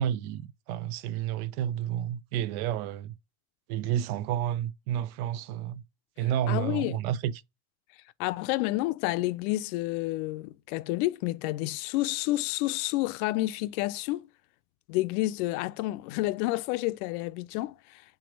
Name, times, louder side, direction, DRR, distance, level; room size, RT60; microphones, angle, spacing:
voice 1, 0.0-3.1 3.7-5.8 6.2-7.3, right 11 dB, 85° right, 0.5 m, -30 dB
voice 2, 6.5-7.0 8.2-14.3 14.9-18.0, left 18 dB, 85° left, 0.5 m, -29 dB
3.7 x 3.2 x 4.5 m
cardioid pair, 125°, 42 cm